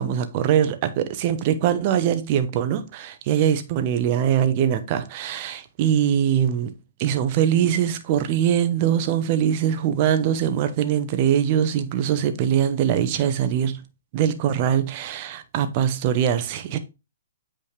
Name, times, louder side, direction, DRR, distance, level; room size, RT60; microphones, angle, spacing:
voice 1, 0.0-6.7 7.0-13.8 14.1-16.8, right 9 dB, 40° right, 1.1 m, -22 dB
8.3 x 5.0 x 3.4 m
hypercardioid pair, 140°, 0 cm